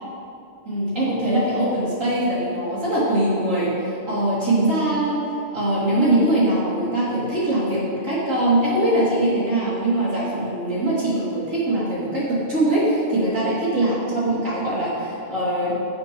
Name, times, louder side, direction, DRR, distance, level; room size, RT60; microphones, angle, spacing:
voice 1, 0.6-5.2 5.5-14.0 14.2-15.7, right 1 dB, 75° right, -9 dB, 3.3 m, -22 dB
17.5 x 7.0 x 3.1 m, 2.7 s
omnidirectional pair, 1.4 m